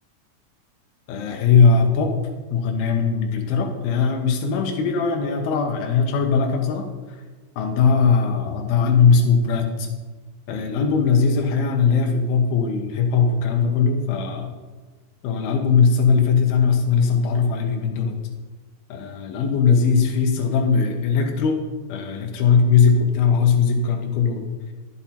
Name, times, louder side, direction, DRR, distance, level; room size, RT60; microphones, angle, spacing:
voice 1, 1.1-2.2 2.5-7.2 7.6-9.9 10.5-14.5 15.2-18.2 18.9-21.6 21.9-24.5, left 5 dB, 85° left, 2 dB, 2.1 m, -19 dB
10.5 x 7.0 x 4.2 m, 1.3 s
omnidirectional pair, 5.4 m